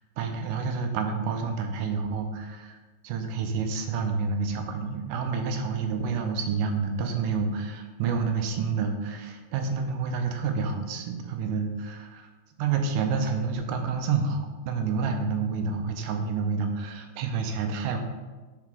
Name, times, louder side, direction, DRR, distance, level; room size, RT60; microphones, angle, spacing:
voice 1, 0.2-2.8 3.0-12.3 12.6-18.0, right 5 dB, 85° right, 5 dB, 2.2 m, -29 dB
5.6 x 4.8 x 3.6 m, 1.3 s
omnidirectional pair, 3.7 m